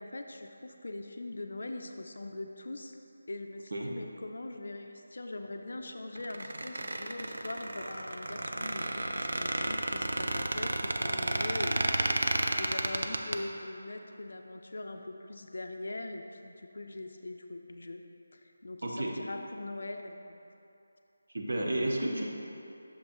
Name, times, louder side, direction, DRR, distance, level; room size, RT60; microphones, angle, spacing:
voice 1, 0.0-3.0 3.3-18.0 18.3-20.4, left 2 dB, 60° left, 5 dB, 0.4 m, -42 dB
Squeak, 6.2-13.4, right 1 dB, 75° right, 0.4 m, -32 dB
voice 2, 18.8-19.2 21.3-22.2, right 1 dB, 55° right, -1 dB, 0.9 m, -31 dB
6.5 x 5.4 x 3.0 m, 2.8 s
figure-of-eight pair, 175°, 0 cm